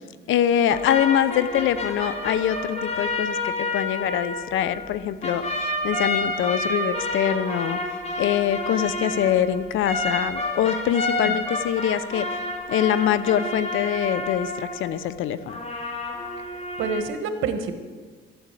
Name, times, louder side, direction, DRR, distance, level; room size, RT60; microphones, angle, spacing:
voice 1, 0.3-7.8 8.2-12.4 12.7-15.6, left 10 dB, 80° left, 15 dB, 0.7 m, -24 dB
sound 1, 0.7-5.0 5.2-15.1 15.5-17.0, left 2 dB, 30° left, 2.6 m, -29 dB
voice 2, 16.5-17.8, right 5 dB, 90° right, 9 dB, 1.3 m, -28 dB
12.5 x 8.9 x 8.2 m, 1.5 s
cardioid pair, 90°, 20 cm